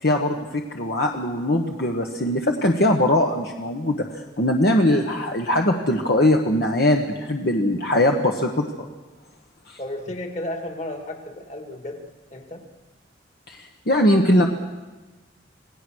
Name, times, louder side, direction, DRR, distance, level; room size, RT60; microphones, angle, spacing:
voice 1, 0.0-8.6 9.7-9.8 13.5-14.5, left 1 dB, 60° left, 2 dB, 1.4 m, -21 dB
voice 2, 9.8-12.0 12.3-12.6, left 1 dB, 40° left, 4 dB, 2.4 m, -33 dB
27.5 x 18.0 x 6.4 m, 1.2 s
head